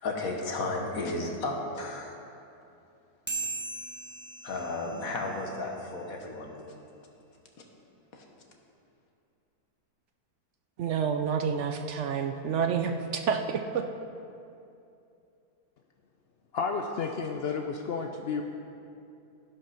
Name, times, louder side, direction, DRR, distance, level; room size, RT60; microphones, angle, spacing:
voice 1, 0.0-2.2 4.4-6.5 8.1-8.2, left 2 dB, 60° left, 1 dB, 1.6 m, -33 dB
sound 1, 3.3-6.1, right 3 dB, 5° right, 1.4 m, -39 dB
voice 2, 10.8-13.8, right 6 dB, 70° right, 6 dB, 0.7 m, -29 dB
voice 3, 16.5-18.4, left 5 dB, 80° left, 3 dB, 0.5 m, -31 dB
15.0 x 5.4 x 5.7 m, 2.7 s
omnidirectional pair, 1.7 m